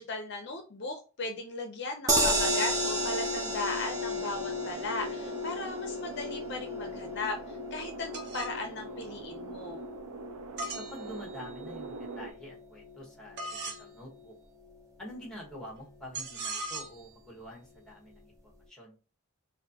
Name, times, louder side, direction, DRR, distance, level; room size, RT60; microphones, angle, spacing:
voice 1, 0.0-9.8, left 2 dB, 50° left, 4 dB, 0.6 m, -37 dB
sound 1, 2.1-14.3 14.7-14.8 15.1-15.2, equal, 15° right, 0.5 m, -34 dB
sound 2, 2.2-12.3, right 4 dB, 85° right, 0.5 m, -43 dB
sound 3, 8.1-8.6 10.6-11.6 13.4-13.8 16.1-17.1, right 2 dB, 50° right, 0.8 m, -38 dB
voice 2, 10.7-14.3 15.0-18.3 18.7-18.9, equal, 5° left, -1 dB, 1.3 m, -47 dB
4.2 x 2.6 x 2.8 m, 0.35 s
head